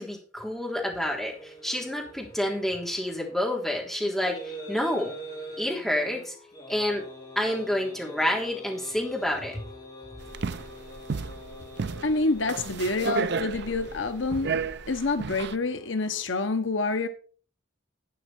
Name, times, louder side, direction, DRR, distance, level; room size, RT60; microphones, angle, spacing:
voice 1, 0.0-5.1 5.6-6.3 6.7-7.0 7.3-9.6, left 1 dB, ahead, 3.4 m, -29 dB
sound 1, 1.3-16.2, equal, 20° left, 6.1 m, -44 dB
sound 2, 10.2-15.5, right 5 dB, 60° right, 0.5 m, -33 dB
voice 2, 12.0-14.6 14.9-17.1, left 3 dB, 75° left, 1.1 m, -27 dB
12.0 x 9.1 x 4.4 m
head